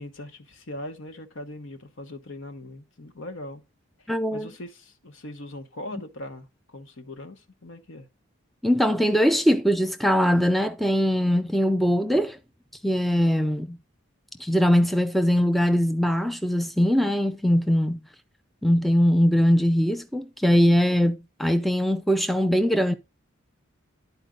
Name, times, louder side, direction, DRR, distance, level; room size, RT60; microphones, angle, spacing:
voice 1, 0.0-3.6 4.0-8.1, left 1 dB, 70° left, 1.1 m, -40 dB
voice 2, 4.1-4.5 8.6-12.4 12.8-13.8 14.4-18.0 18.6-22.9, equal, ahead, 0.3 m, -21 dB
12.0 x 4.4 x 3.8 m
head